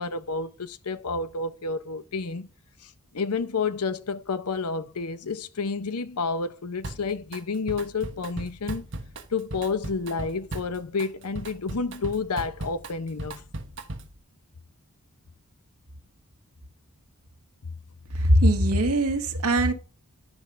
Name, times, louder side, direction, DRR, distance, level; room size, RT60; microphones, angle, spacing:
voice 1, 0.0-2.5 2.8-8.9 9.3-13.5, left 4 dB, 85° left, 0.7 m, -30 dB
Drum kit, 6.8-7.4 7.7-14.2, right 2 dB, 55° right, 1.2 m, -37 dB
voice 2, 18.1-19.7, right 1 dB, 80° right, 1.3 m, -21 dB
10.5 x 5.3 x 3.2 m
head